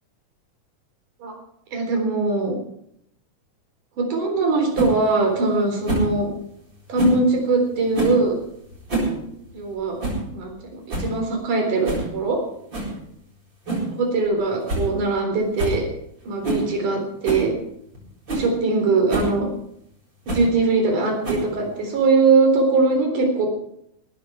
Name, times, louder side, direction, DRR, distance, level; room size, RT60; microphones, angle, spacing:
voice 1, 1.7-2.6 4.0-6.3 6.9-8.4 9.5-10.0 10.3-12.4 14.0-15.9 16.3-17.5 18.3-19.5 20.3-23.5, right 3 dB, 80° right, 2 dB, 5.4 m, -21 dB
sound 1, 4.7-4.9 5.8-6.1 6.9-7.2 7.9-8.2 8.7-9.1 9.4-9.5 10.0-10.2 10.6-10.7 10.9-11.2 11.8-12.1 12.7-12.9 13.7-13.9 14.2-14.3 14.7-14.9 15.2-15.3 15.6-15.8 16.4-16.7 17.2-17.5 17.9-18.0 18.3-18.5 19.1-19.3 20.3-20.5 21.2-21.6, right 2 dB, 35° right, 8.4 m, -25 dB
18.5 x 14.5 x 4.8 m, 0.74 s
omnidirectional pair, 3.6 m